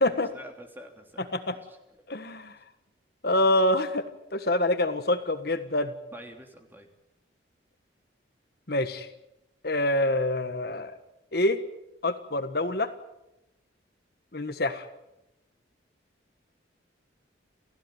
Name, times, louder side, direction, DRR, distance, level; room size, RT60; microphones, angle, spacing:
voice 1, 0.0-1.8 6.1-6.9, equal, 10° right, 4 dB, 3.1 m, -47 dB
voice 2, 2.1-2.5 3.2-4.0 4.3-5.9 8.7-9.1 9.6-10.9 11.3-11.6 12.0-12.9 14.3-14.9, left 1 dB, 55° left, 9 dB, 1.5 m, -26 dB
29.0 x 16.0 x 9.5 m, 0.91 s
head